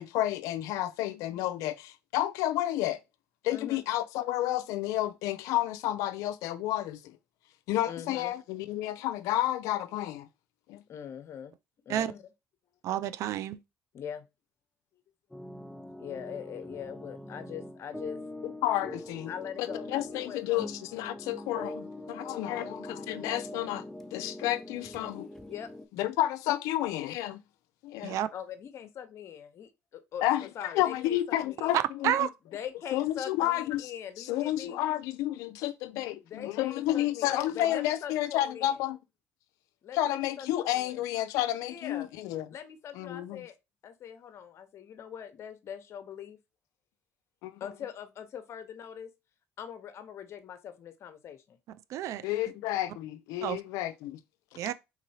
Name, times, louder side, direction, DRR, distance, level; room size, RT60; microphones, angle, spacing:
voice 1, 0.0-3.0 3.4-7.2 7.7-10.3 10.7-10.8 18.4-19.3 19.6-23.8 24.1-25.3 26.0-27.4 27.8-28.2 30.2-32.3 32.9-33.9 34.2-39.0 39.9-42.5 42.9-43.5 47.4-47.7 52.2-54.2, left 14 dB, 80° left, 0.4 m, -31 dB
voice 2, 3.5-3.8 7.9-8.3 10.9-11.5 11.8-12.2 13.9-14.3 16.0-18.2 19.3-20.7 22.4-22.7 25.5-25.7 28.3-31.7 32.5-34.8 36.2-38.8 39.8-41.0 41.6-42.1 42.5-43.5 43.8-46.4 47.6-49.1 49.6-51.6, left 8 dB, 55° left, 0.8 m, -42 dB
voice 3, 12.8-13.6 28.0-28.3 31.7-32.3 51.9-52.2 53.4-53.6 54.6-54.7, right 11 dB, 65° right, 0.4 m, -29 dB
sound 1, 15.3-25.9, left 1 dB, 5° left, 0.4 m, -43 dB
3.7 x 3.0 x 2.7 m
supercardioid pair, 85°, 6 cm